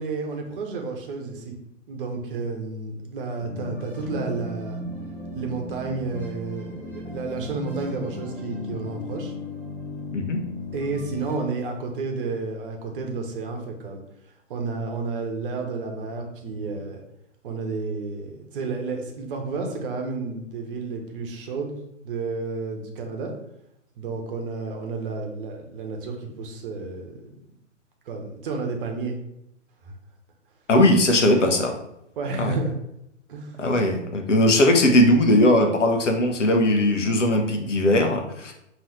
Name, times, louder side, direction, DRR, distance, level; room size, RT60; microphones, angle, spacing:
voice 1, 0.0-1.5 1.9-4.8 5.3-9.3 10.7-14.0 14.5-17.0 17.4-21.8 22.0-23.3 24.0-27.3 28.1-29.2 29.8-29.9 32.2-32.7 33.3-33.6, right 4 dB, 45° right, 3 dB, 1.0 m, -31 dB
sound 1, 3.4-11.4, left 2 dB, 5° left, 0.6 m, -36 dB
voice 2, 30.7-31.8 32.4-32.6 33.6-38.5, left 1 dB, 75° left, 4 dB, 1.0 m, -19 dB
5.5 x 3.1 x 3.2 m, 0.81 s
figure-of-eight pair, 115°, 37 cm